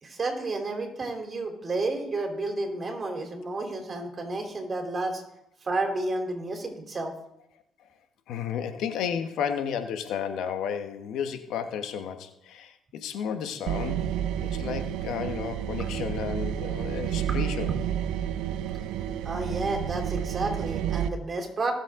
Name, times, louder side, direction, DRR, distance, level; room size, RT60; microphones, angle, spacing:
voice 1, 0.0-5.2 5.6-7.1 19.2-21.7, right 2 dB, 40° right, 2 dB, 3.5 m, -31 dB
voice 2, 8.3-14.1 14.4-17.8, left 8 dB, 75° left, 8 dB, 1.2 m, -32 dB
sound 1, 13.7-21.1, right 10 dB, 85° right, 0.6 m, -30 dB
18.5 x 7.5 x 3.8 m, 0.79 s
supercardioid pair, 75°, 0 cm